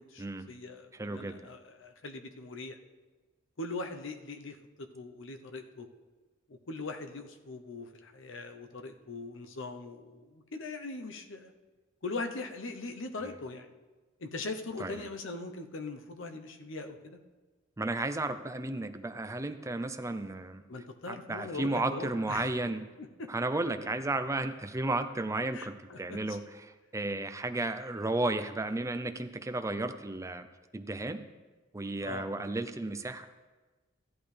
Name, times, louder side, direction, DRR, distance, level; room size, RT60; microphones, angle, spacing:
voice 1, 0.0-2.8 3.6-5.9 6.5-11.5 12.0-13.7 14.2-17.2 20.7-22.5 23.0-23.3 25.5-26.4 32.0-32.3, left 3 dB, 70° left, 6 dB, 0.9 m, -41 dB
voice 2, 0.9-1.4 13.2-13.4 14.8-14.9 17.8-20.6 21.1-22.8 23.3-30.5 30.7-31.2 31.7-33.2, right 2 dB, 15° right, 8 dB, 0.5 m, -33 dB
14.5 x 10.5 x 3.4 m, 1.3 s
head